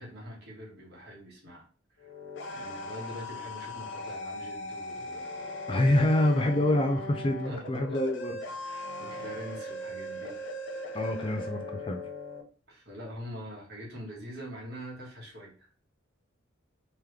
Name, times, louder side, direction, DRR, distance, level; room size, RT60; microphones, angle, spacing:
voice 1, 0.0-1.6 1.9-2.1 2.5-5.6 7.5-7.8 8.6-10.4 10.8-11.0 12.7-15.7, equal, 50° right, -3 dB, 1.6 m, -44 dB
sound 1, 2.0-12.4, left 2 dB, 65° left, 0.7 m, -39 dB
voice 2, 5.7-8.4 10.9-12.0, left 1 dB, 25° left, 5 dB, 0.4 m, -26 dB
3.7 x 3.0 x 3.2 m, 0.40 s
head